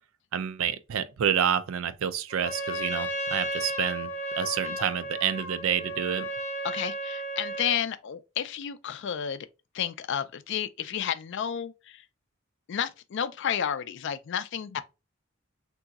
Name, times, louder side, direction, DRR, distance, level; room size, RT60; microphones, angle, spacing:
voice 1, 0.3-4.1 4.4-6.3, right 8 dB, 75° right, 0.4 m, -28 dB
Trumpet, 2.3-7.8, right 1 dB, 30° left, 0.9 m, -34 dB
voice 2, 6.6-9.5 9.7-12.0 12.7-14.8, left 8 dB, 60° left, 0.4 m, -31 dB
3.9 x 2.6 x 2.3 m
head